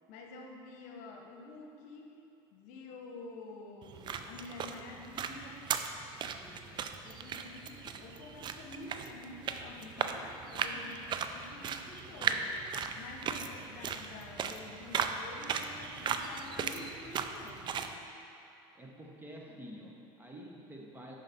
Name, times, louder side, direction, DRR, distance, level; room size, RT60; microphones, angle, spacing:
voice 1, 0.1-2.2 2.5-5.7 6.2-18.0, left 3 dB, 70° left, 1 dB, 0.9 m, -49 dB
sound 1, 3.8-17.9, right 6 dB, 40° right, 0.4 m, -37 dB
voice 2, 18.7-21.1, equal, 15° right, -2 dB, 1.1 m, -48 dB
6.5 x 5.6 x 4.3 m, 2.6 s
supercardioid pair, 95°, 13 cm